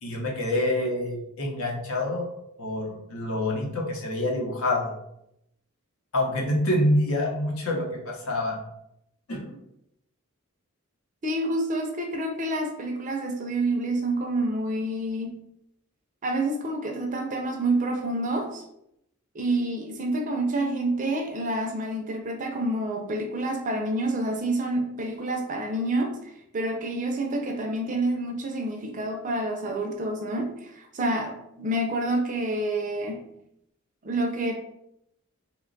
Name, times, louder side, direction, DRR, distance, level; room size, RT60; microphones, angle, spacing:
voice 1, 0.0-2.2 2.6-4.9 6.1-8.6 9.3-9.5, left 1 dB, 70° left, 0 dB, 0.8 m, -26 dB
voice 2, 11.2-15.4 16.2-18.6 19.3-26.1 26.5-33.3 34.0-34.5, right 1 dB, 35° right, 3 dB, 0.4 m, -28 dB
3.0 x 2.2 x 3.8 m, 0.79 s
head